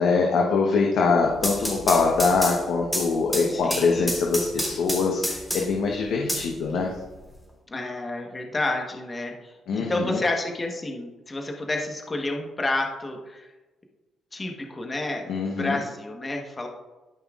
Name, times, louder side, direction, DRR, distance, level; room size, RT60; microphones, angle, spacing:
voice 1, 0.0-6.9 9.7-10.2 15.3-15.8, left 4 dB, 80° left, -1 dB, 1.0 m, -23 dB
sound 1, 1.2-5.8 6.3-7.3, equal, ahead, 2.6 m, -30 dB
voice 2, 3.5-4.2 7.7-13.5 14.3-16.7, left 2 dB, 25° left, 2 dB, 1.1 m, -30 dB
13.0 x 5.5 x 2.4 m, 1.2 s
cardioid pair, 90°, 0 cm